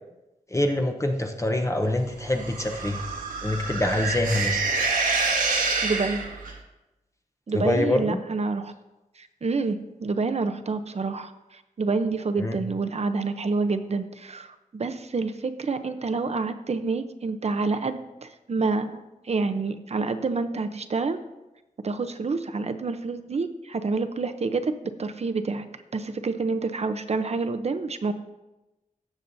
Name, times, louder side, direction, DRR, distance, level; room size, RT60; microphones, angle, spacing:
voice 1, 0.5-3.1 3.4-4.6 7.5-8.2 12.4-12.6, left 1 dB, 20° left, 3 dB, 0.8 m, -25 dB
sound 1, 2.3-6.6, right 3 dB, 80° right, 1.4 m, -27 dB
voice 2, 5.8-6.2 7.5-8.7 9.2-21.2 21.8-25.7 25.9-28.1, right 4 dB, 50° right, 9 dB, 0.7 m, -28 dB
17.5 x 7.2 x 2.7 m, 1.0 s
wide cardioid pair, 120°, 14 cm